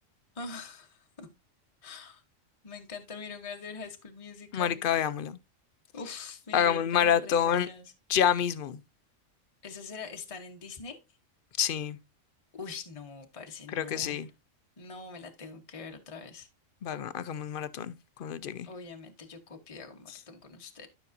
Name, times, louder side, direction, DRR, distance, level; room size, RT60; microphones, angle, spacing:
voice 1, 0.3-1.3 1.8-2.2 2.6-4.8 5.9-7.9 9.6-11.0 12.5-14.2 14.8-16.5 18.6-20.9, left 5 dB, 30° left, 1.0 m, -43 dB
voice 2, 4.5-5.4 6.5-7.7 8.1-8.8 11.6-12.0 13.7-14.3 16.8-17.9 18.2-18.7, left 9 dB, 55° left, 0.7 m, -27 dB
12.0 x 5.9 x 2.6 m
omnidirectional pair, 1.4 m